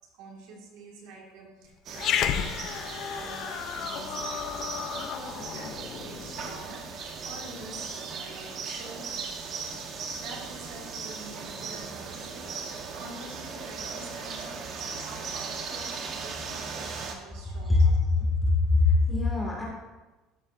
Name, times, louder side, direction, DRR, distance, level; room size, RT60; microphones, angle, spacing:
voice 1, 0.1-9.1 10.2-18.0, right 2 dB, 70° right, 0 dB, 2.1 m, -47 dB
Growling, 1.9-6.6, left 9 dB, 50° left, 0.5 m, -32 dB
sound 1, 1.9-17.2, right 5 dB, 45° right, 1.1 m, -38 dB
voice 2, 18.2-19.6, left 3 dB, 10° left, -4 dB, 2.2 m, -22 dB
12.5 x 7.8 x 2.6 m, 1.1 s
cardioid pair, 135°, 0 cm